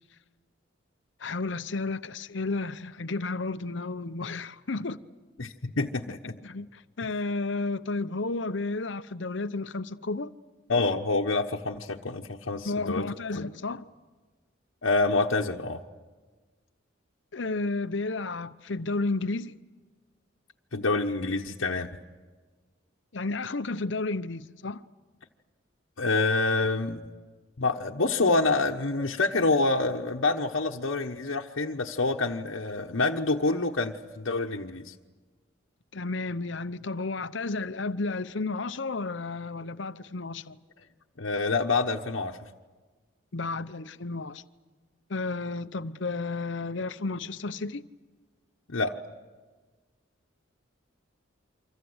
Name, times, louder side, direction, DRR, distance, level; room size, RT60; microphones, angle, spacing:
voice 1, 1.2-5.0 6.2-10.3 12.6-13.8 17.3-19.5 23.1-24.8 35.9-40.6 43.3-44.4 45.1-47.8, left 3 dB, 65° left, 0.8 m, -32 dB
voice 2, 5.4-6.2 10.7-13.0 14.8-15.8 20.7-21.9 26.0-27.0 27.6-34.9 41.2-42.4 48.7-49.0, left 3 dB, 90° left, 1.1 m, -27 dB
28.5 x 25.5 x 8.0 m
head